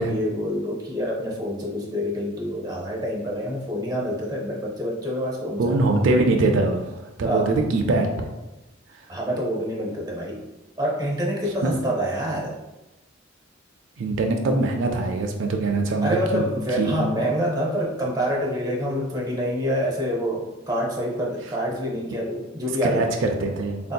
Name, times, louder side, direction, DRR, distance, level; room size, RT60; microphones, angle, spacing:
voice 1, 0.0-5.7 7.2-7.5 9.1-10.4 10.8-12.6 16.0-23.3 23.8-23.9, equal, 20° right, -3 dB, 0.6 m, -26 dB
voice 2, 5.6-6.9 7.2-8.3 8.9-9.1 11.6-11.7 14.0-16.4 16.8-16.9 22.8-23.9, right 2 dB, 80° right, 2 dB, 0.4 m, -22 dB
3.6 x 2.7 x 2.2 m, 1.0 s
head